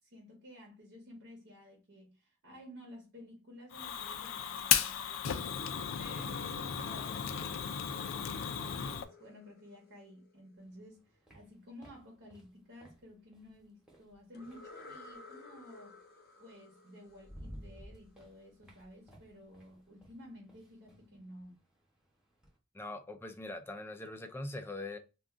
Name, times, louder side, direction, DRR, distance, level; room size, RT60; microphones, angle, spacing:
voice 1, 0.0-16.0 16.4-21.6, left 1 dB, 65° right, 1.0 m, -53 dB
Fire, 3.7-9.0, left 8 dB, 85° left, 0.4 m, -35 dB
sound 1, 7.8-10.7 14.3-18.1, left 3 dB, 50° left, 0.7 m, -55 dB
sound 2, 10.6-15.1 16.4-16.5 16.9-22.6, equal, 5° right, 0.9 m, -55 dB
voice 2, 22.7-25.0, left 2 dB, 10° left, 0.4 m, -42 dB
2.5 x 2.2 x 3.6 m
head